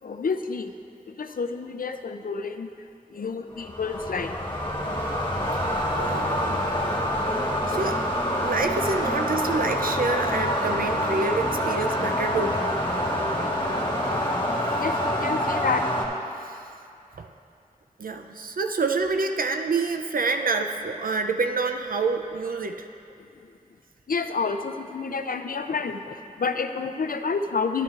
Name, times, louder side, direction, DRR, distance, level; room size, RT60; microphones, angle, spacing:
voice 1, 0.0-0.7 1.1-2.7 3.1-4.3 14.8-15.9 24.1-27.8, left 5 dB, 85° left, 8 dB, 0.4 m, -29 dB
sound 1, 3.5-16.1, equal, 35° left, 1.5 m, -26 dB
voice 2, 6.0-6.6 7.7-8.0 8.4-12.6 17.2-17.3 18.0-22.9, right 3 dB, 80° right, 5 dB, 0.4 m, -27 dB
11.0 x 9.3 x 2.4 m, 2.5 s
wide cardioid pair, 45°, 14 cm